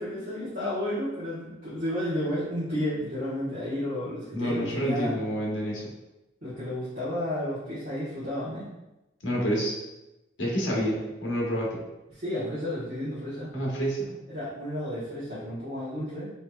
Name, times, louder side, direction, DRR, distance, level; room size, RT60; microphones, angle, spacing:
voice 1, 0.0-5.2 6.4-8.7 12.1-13.5 14.3-16.3, left 1 dB, 55° right, -13 dB, 1.3 m, -32 dB
voice 2, 4.3-5.9 9.2-9.7 10.4-11.8 13.5-14.1, equal, 75° left, -3 dB, 1.1 m, -28 dB
4.3 x 3.1 x 2.3 m, 0.99 s
head